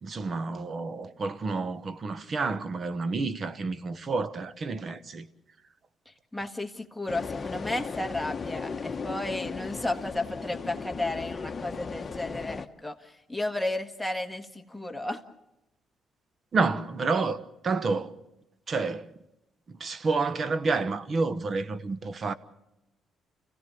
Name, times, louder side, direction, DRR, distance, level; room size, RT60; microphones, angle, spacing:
voice 1, 0.0-5.3 16.5-18.1 18.7-19.1 19.7-22.3, right 4 dB, 45° right, 1.2 m, -29 dB
voice 2, 6.3-15.2, left 2 dB, 5° left, 1.7 m, -33 dB
sound 1, 7.1-12.7, left 5 dB, 35° left, 1.2 m, -36 dB
29.5 x 16.5 x 7.0 m
cardioid pair, 95°, 0 cm